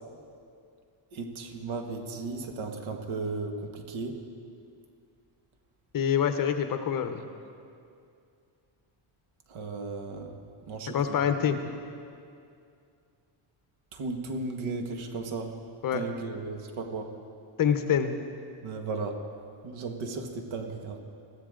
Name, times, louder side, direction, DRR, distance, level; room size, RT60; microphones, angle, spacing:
voice 1, 1.1-4.2 9.5-10.4 10.7-11.2 11.5-11.6 13.9-15.5 15.9-17.1 18.6-19.2 19.6-21.0, right 3 dB, 75° right, 4 dB, 1.9 m, -35 dB
voice 2, 5.9-7.2 10.9-11.6 15.8-16.0 17.6-18.1, left 8 dB, 45° left, 8 dB, 1.0 m, -26 dB
21.5 x 14.5 x 3.9 m, 2.4 s
cardioid pair, 155°, 47 cm